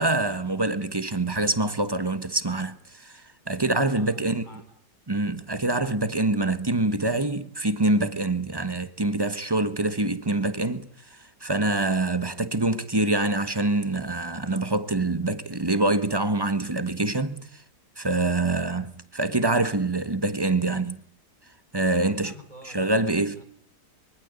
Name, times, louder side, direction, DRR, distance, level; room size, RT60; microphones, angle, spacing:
voice 1, 0.0-4.4 5.1-17.6 18.0-21.0 21.7-22.3 22.7-23.4, right 2 dB, 15° right, 1.2 m, -25 dB
voice 2, 4.0-4.7 22.0-23.1 23.4-23.5, equal, 25° left, 5.2 m, -47 dB
25.0 x 23.5 x 8.3 m
omnidirectional pair, 1.7 m